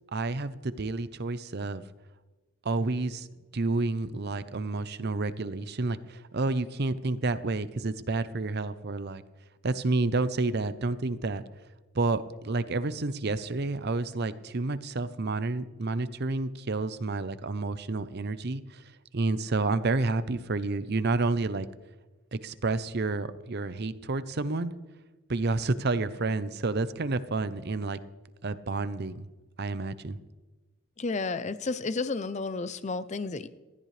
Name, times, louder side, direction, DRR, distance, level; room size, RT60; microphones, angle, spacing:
voice 1, 0.1-1.8 2.6-3.3 3.5-9.2 9.6-11.4 11.9-18.8 19.1-21.7 22.3-24.7 25.3-28.0 28.4-29.3 29.6-30.2, right 3 dB, 50° right, 14 dB, 0.7 m, -30 dB
voice 2, 31.0-33.5, left 3 dB, 35° left, 13 dB, 0.6 m, -32 dB
19.5 x 13.5 x 3.3 m, 1.2 s
head